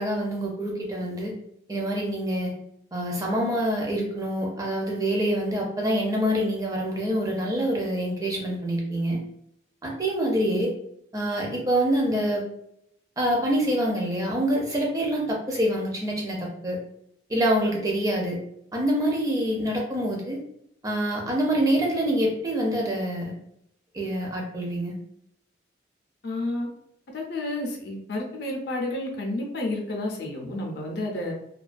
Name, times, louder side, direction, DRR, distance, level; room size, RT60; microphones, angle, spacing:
voice 1, 0.0-1.3 1.7-2.5 2.9-9.2 9.8-10.7 11.1-12.4 13.2-16.8 17.3-18.4 18.7-20.4 20.8-23.3 23.9-25.0, right 1 dB, 20° right, -1 dB, 0.5 m, -26 dB
voice 2, 26.2-26.7 27.1-31.3, left 2 dB, 55° left, 0 dB, 0.5 m, -30 dB
2.3 x 2.2 x 2.4 m, 0.74 s
head